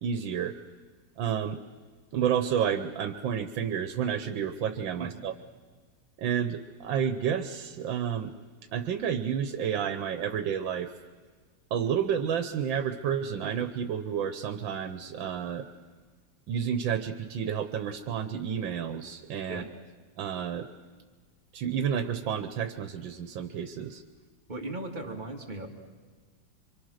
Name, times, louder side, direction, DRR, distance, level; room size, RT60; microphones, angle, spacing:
voice 1, 0.0-0.6 1.2-1.6 2.1-5.3 6.2-8.3 8.7-10.9 11.7-15.7 16.5-19.6 20.2-20.7 21.5-24.0, right 8 dB, 85° right, 9 dB, 1.7 m, -30 dB
voice 2, 24.5-25.7, right 2 dB, 25° right, 0 dB, 2.7 m, -37 dB
27.5 x 24.5 x 6.5 m, 1.5 s
omnidirectional pair, 2.0 m